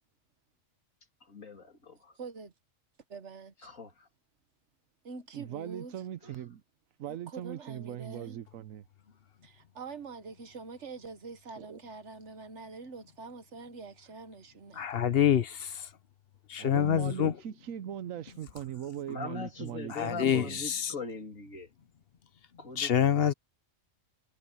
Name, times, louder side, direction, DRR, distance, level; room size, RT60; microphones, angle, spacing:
voice 1, 1.3-2.1 3.6-3.9 6.2-6.3 19.1-21.7 22.6-23.3, left 4 dB, 90° left, 3.3 m, -41 dB
voice 2, 2.2-2.5 3.1-3.7 5.0-6.0 7.1-8.4 9.4-14.9, right 4 dB, 60° right, 1.5 m, -45 dB
voice 3, 5.3-6.6 7.0-8.8 11.6-11.8 16.6-20.6, right 10 dB, 90° right, 1.2 m, -40 dB
voice 4, 14.7-15.9 16.5-17.3 19.9-20.9 22.8-23.3, left 9 dB, 55° left, 0.9 m, -27 dB
omnidirectional pair, 1.3 m